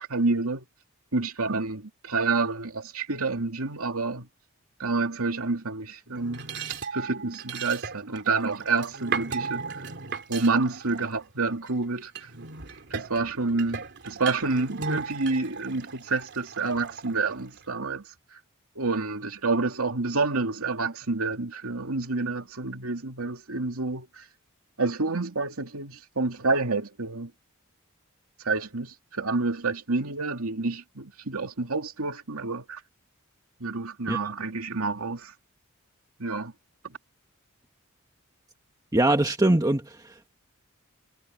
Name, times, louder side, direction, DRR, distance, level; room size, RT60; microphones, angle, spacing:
voice 1, 0.1-0.6 1.1-4.3 4.8-6.5 6.9-9.9 10.3-12.1 12.9-18.0 18.8-24.2 24.8-27.3 28.4-32.8 33.6-35.3 36.2-36.5, right 3 dB, 80° right, 2.6 m, -28 dB
sound 1, 6.1-11.7 12.2-17.7, right 5 dB, 55° right, 3.1 m, -36 dB
voice 2, 38.9-40.3, right 1 dB, 15° right, 1.5 m, -23 dB
head